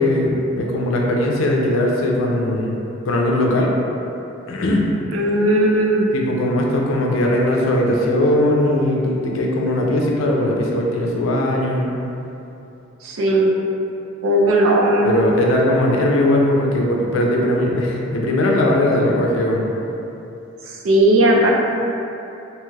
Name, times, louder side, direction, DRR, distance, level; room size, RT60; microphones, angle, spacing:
voice 1, 0.0-3.7 4.5-4.9 6.1-12.0 15.0-19.6, left 1 dB, 75° left, -1 dB, 0.4 m, -19 dB
voice 2, 5.1-6.1 13.0-13.5 14.2-15.2 20.7-21.5, right 1 dB, 85° right, -2 dB, 0.4 m, -16 dB
3.1 x 2.9 x 2.3 m, 2.8 s
head